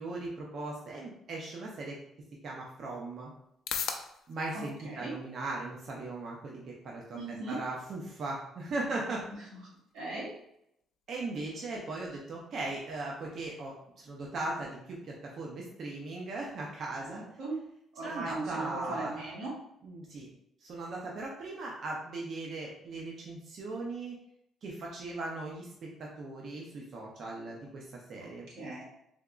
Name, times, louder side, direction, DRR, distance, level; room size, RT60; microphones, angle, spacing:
voice 1, 0.0-2.0 2.4-3.3 4.3-9.2 11.1-17.2 18.0-19.3 19.8-20.3 20.6-24.2 24.6-25.7 26.0-28.5, right 2 dB, 40° right, -2 dB, 0.5 m, -38 dB
sound 1, 2.2-19.1, left 7 dB, 70° left, 0.3 m, -48 dB
voice 2, 4.5-5.1 7.1-7.6 9.9-10.3 17.0-17.6 17.9-19.5 28.5-28.8, right 2 dB, 90° right, -5 dB, 1.4 m, -38 dB
3.5 x 2.8 x 2.4 m, 0.76 s
cardioid pair, 170°, 0 cm